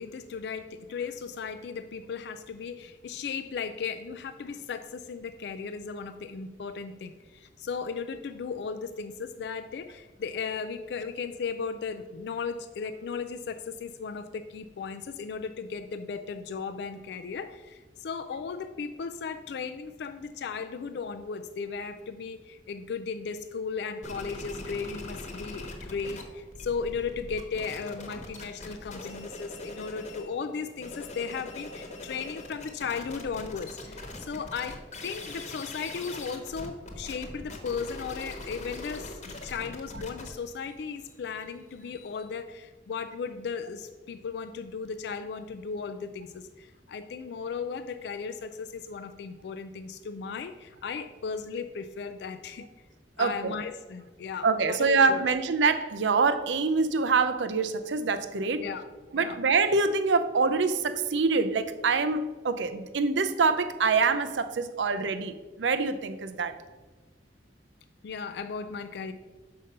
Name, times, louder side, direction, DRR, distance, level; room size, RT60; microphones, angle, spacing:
voice 1, 0.0-52.7 53.2-55.2 58.6-59.4 68.0-69.1, left 5 dB, 65° left, 9 dB, 0.4 m, -36 dB
sound 1, 24.0-26.2 26.5-30.3 30.7-42.3, left 2 dB, 40° left, 1.1 m, -42 dB
voice 2, 53.2-53.6 54.4-58.7 59.1-66.5, right 4 dB, 90° right, 10 dB, 0.5 m, -25 dB
5.7 x 5.1 x 6.5 m, 1.3 s
head